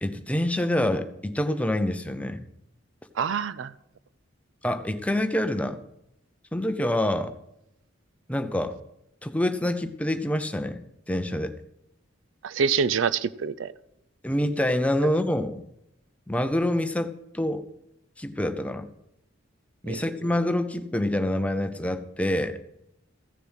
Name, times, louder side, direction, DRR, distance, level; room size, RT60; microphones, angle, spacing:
voice 1, 0.0-2.5 4.6-5.8 6.5-7.3 8.3-8.7 9.2-10.8 11.1-11.5 14.2-15.7 16.3-17.6 18.2-18.8 19.8-22.6, left 1 dB, 5° left, 0.7 m, -26 dB
voice 2, 3.2-3.7 12.4-13.7 19.9-20.1, right 6 dB, 70° right, 0.5 m, -26 dB
15.0 x 6.8 x 6.3 m
head